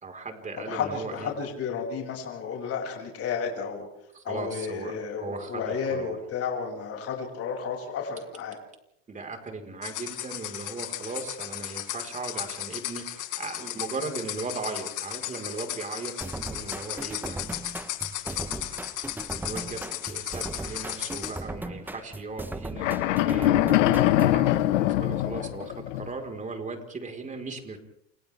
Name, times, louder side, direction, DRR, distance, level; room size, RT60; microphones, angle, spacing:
voice 1, 0.0-1.3 4.1-6.2 9.1-17.4 18.2-18.7 19.3-23.5 24.2-27.8, right 3 dB, 20° right, 4 dB, 4.8 m, -38 dB
voice 2, 0.7-3.9 4.2-8.6 20.6-20.9, left 6 dB, 40° left, 0 dB, 7.2 m, -32 dB
sound 1, 9.8-21.4, left 14 dB, 55° left, 6.1 m, -36 dB
sound 2, 16.2-24.4, right 2 dB, 5° right, 1.2 m, -38 dB
sound 3, 22.8-26.1, left 14 dB, 80° left, 1.7 m, -23 dB
30.0 x 28.5 x 3.6 m, 0.78 s
supercardioid pair, 120°, 37 cm